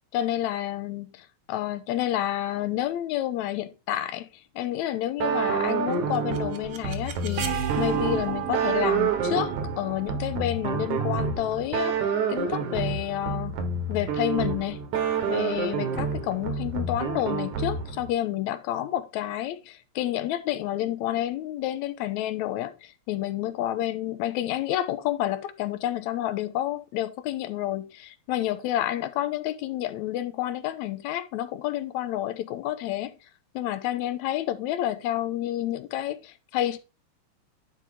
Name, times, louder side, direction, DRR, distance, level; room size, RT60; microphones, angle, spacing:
voice 1, 0.1-4.3 4.6-13.6 13.9-14.8 15.3-33.1 33.6-36.8, left 13 dB, 80° left, 2.0 m, -29 dB
sound 1, 5.2-18.1, right 5 dB, 85° right, 2.8 m, -28 dB
sound 2, 5.9-11.8, right 9 dB, 60° right, 1.5 m, -35 dB
10.0 x 4.6 x 3.7 m
omnidirectional pair, 3.3 m